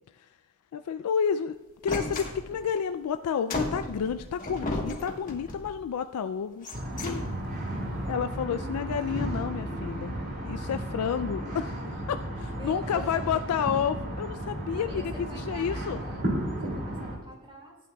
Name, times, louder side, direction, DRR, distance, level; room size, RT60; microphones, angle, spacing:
voice 1, 0.7-1.6 1.8-6.7 7.0-7.2 8.1-10.1 10.4-16.0, left 7 dB, 75° left, 10 dB, 0.3 m, -30 dB
sound 1, 1.9-2.8 3.5-5.8 6.5-7.6, left 2 dB, 40° left, 1.2 m, -35 dB
sound 2, 6.7-17.1, right 1 dB, 50° right, 2.5 m, -34 dB
voice 2, 12.5-13.6 14.7-16.3 16.6-17.7, right 1 dB, 25° right, 0 dB, 2.0 m, -46 dB
15.0 x 9.1 x 2.3 m, 1.2 s
head